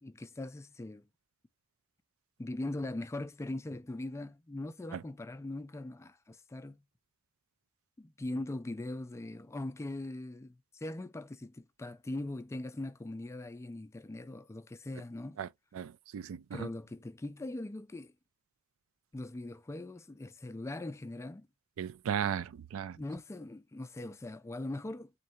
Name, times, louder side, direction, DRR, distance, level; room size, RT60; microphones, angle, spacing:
voice 1, 0.0-1.1 2.4-6.8 8.0-15.4 16.5-18.1 19.1-21.5 23.0-25.1, left 2 dB, 15° left, 0.3 m, -41 dB
voice 2, 15.7-16.7 21.8-23.0, right 8 dB, 65° right, 0.3 m, -36 dB
3.6 x 3.2 x 2.9 m
head